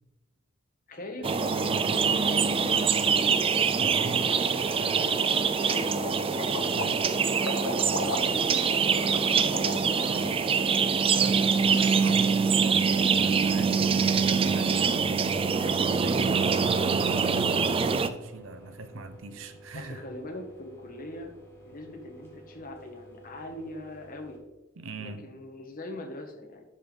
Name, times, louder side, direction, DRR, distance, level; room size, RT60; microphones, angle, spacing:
voice 1, 0.9-3.9 4.2-4.5 4.8-7.0 7.4-9.4 11.6-11.8 16.0-16.4 19.7-21.3 21.6-24.4 25.0-26.7, left 1 dB, 45° left, 1.5 m, -42 dB
sound 1, 1.2-18.1, right 5 dB, 25° right, 0.4 m, -24 dB
voice 2, 3.8-5.2 6.7-7.0 10.1-10.4 11.0-20.0 24.8-25.4, right 3 dB, 75° right, 0.8 m, -40 dB
sound 2, 6.3-10.2, left 2 dB, 85° left, 1.1 m, -35 dB
sound 3, 8.0-24.4, right 1 dB, 10° left, 1.6 m, -51 dB
11.5 x 5.3 x 3.9 m
head